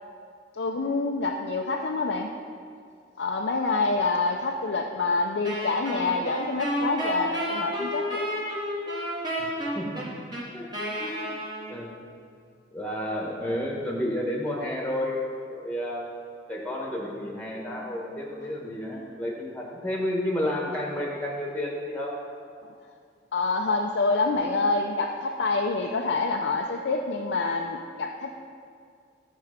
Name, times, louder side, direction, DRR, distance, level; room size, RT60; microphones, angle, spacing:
voice 1, 0.5-2.3 3.2-8.2 11.0-11.4 22.6-22.7 23.3-28.3, left 3 dB, 75° left, 1 dB, 0.5 m, -27 dB
Wind instrument woodwind instrument, 5.4-12.0, equal, 25° right, 2.1 m, -31 dB
voice 2, 9.4-10.0 10.3-10.7 11.0-11.4 11.7-11.9 12.7-16.1 16.5-22.2, left 1 dB, 10° left, -2 dB, 1.4 m, -31 dB
13.5 x 4.6 x 5.1 m, 2.2 s
head